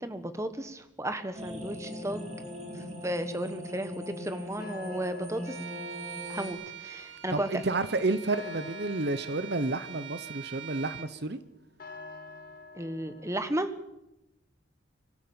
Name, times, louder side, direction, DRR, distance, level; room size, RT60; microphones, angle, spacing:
voice 1, 0.0-2.3 2.7-5.6 6.3-7.6 12.7-13.7, right 1 dB, 15° right, 10 dB, 1.3 m, -34 dB
sound 1, 1.3-6.5, left 1 dB, 35° right, 3.9 m, -40 dB
sound 2, 2.1-13.4, left 3 dB, 45° left, 2.9 m, -50 dB
Bowed string instrument, 5.4-11.2, right 9 dB, 70° right, 1.6 m, -43 dB
voice 2, 7.3-11.4, right 2 dB, 55° right, 13 dB, 0.9 m, -30 dB
24.0 x 13.0 x 8.8 m, 0.88 s
head